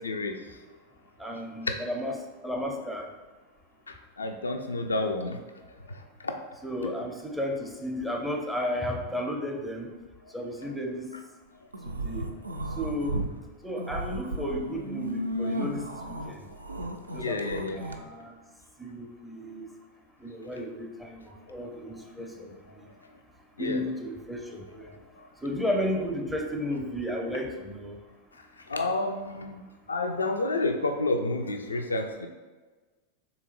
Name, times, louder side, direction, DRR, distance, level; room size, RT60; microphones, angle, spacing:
voice 1, 0.0-0.4 3.9-5.4 5.9-6.3 17.2-17.8 23.6-23.8 24.9-25.3 28.7-29.6 29.9-32.3, left 2 dB, 75° left, 5 dB, 0.3 m, -30 dB
voice 2, 1.2-2.2 2.4-3.1 6.6-9.9 10.3-11.1 11.8-12.3 12.7-13.3 13.6-16.5 17.1-18.4 18.8-19.7 20.2-22.9 23.6-25.0 25.4-28.0, left 1 dB, ahead, 2 dB, 0.4 m, -33 dB
sound 1, 11.7-13.3 13.7-17.9, right 1 dB, 80° right, 0.3 m, -34 dB
3.6 x 2.8 x 4.1 m, 1.3 s
figure-of-eight pair, 90°, 0 cm